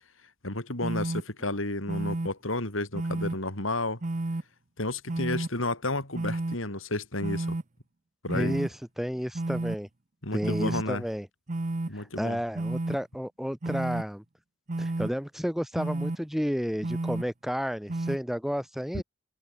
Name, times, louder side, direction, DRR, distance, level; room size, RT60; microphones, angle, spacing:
voice 1, 0.4-4.0 4.8-7.6 8.2-8.6 10.2-11.0 11.9-12.4 18.9-19.0, left 2 dB, 70° left, 5.2 m, -32 dB
sound 1, 0.8-1.2 1.9-2.3 2.9-3.3 4.0-4.4 5.1-5.5 6.1-6.6 7.2-7.6 8.3-8.7 9.3-9.8 10.4-10.8 11.5-11.9 12.6-13.0 13.6-14.0 14.7-15.1 15.8-16.2 16.8-17.2 17.9-18.2, right 2 dB, 40° right, 0.8 m, -31 dB
voice 2, 8.3-8.7 9.0-9.9 10.3-11.3 11.9-14.2 14.8-19.0, equal, ahead, 6.8 m, -31 dB
open air
head